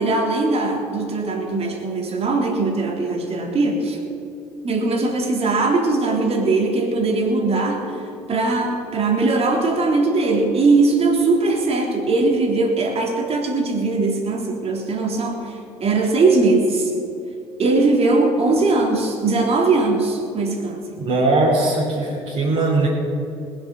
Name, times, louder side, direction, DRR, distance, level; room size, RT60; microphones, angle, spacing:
voice 1, 0.0-4.0 4.6-16.9 17.6-20.9, right 3 dB, 45° right, 1 dB, 3.4 m, -20 dB
voice 2, 21.0-22.9, right 2 dB, 60° right, -7 dB, 4.0 m, -19 dB
20.0 x 7.9 x 7.8 m, 2.6 s
hypercardioid pair, 60°, 14 cm